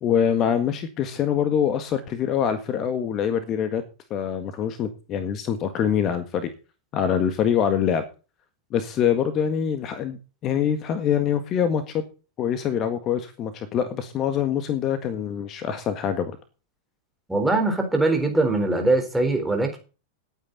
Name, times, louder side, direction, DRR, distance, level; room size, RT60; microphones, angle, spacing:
voice 1, 0.0-3.8 4.1-6.5 6.9-8.0 8.7-10.2 10.4-12.0 12.4-16.3, left 8 dB, 35° left, 1.7 m, -24 dB
voice 2, 17.3-19.8, right 2 dB, 5° right, 4.2 m, -22 dB
18.5 x 9.1 x 4.1 m
figure-of-eight pair, 90°, 0 cm